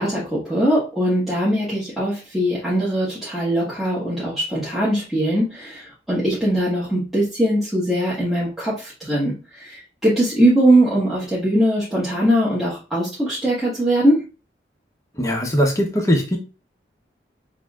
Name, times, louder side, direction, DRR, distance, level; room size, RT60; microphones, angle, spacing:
voice 1, 0.0-14.2, right 1 dB, ahead, -10 dB, 1.3 m, -21 dB
voice 2, 15.2-16.4, equal, 20° left, 1 dB, 0.9 m, -20 dB
6.6 x 2.7 x 2.4 m, 0.32 s
head